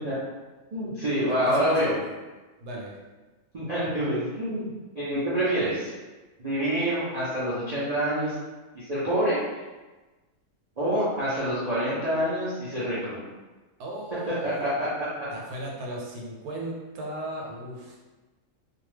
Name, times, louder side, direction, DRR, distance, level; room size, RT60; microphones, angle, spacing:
voice 1, 0.7-1.9 3.5-4.7 4.9-5.9 6.4-8.4 8.7-9.4 10.8-13.2 14.4-15.1, equal, 65° right, -10 dB, 0.4 m, -26 dB
voice 2, 1.3-1.9 2.6-2.9 13.8-14.7 15.3-18.0, right 1 dB, 85° right, -2 dB, 1.1 m, -36 dB
2.5 x 2.2 x 3.2 m, 1.2 s
omnidirectional pair, 1.6 m